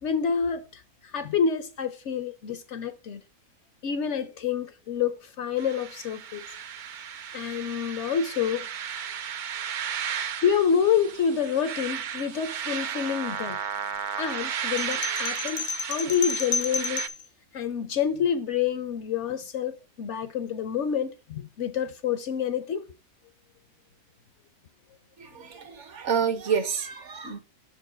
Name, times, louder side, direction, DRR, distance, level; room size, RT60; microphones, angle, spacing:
voice 1, 0.0-3.2 3.8-6.4 7.3-8.7 10.4-13.6 14.2-17.0 17.5-22.8, left 7 dB, 65° left, 0.8 m, -28 dB
sound 1, 5.6-17.1, right 8 dB, 85° right, 0.4 m, -34 dB
sound 2, 14.8-17.2, left 5 dB, 90° left, 1.2 m, -31 dB
voice 2, 25.2-27.4, right 7 dB, 60° right, 1.2 m, -29 dB
6.7 x 4.6 x 4.9 m
omnidirectional pair, 1.5 m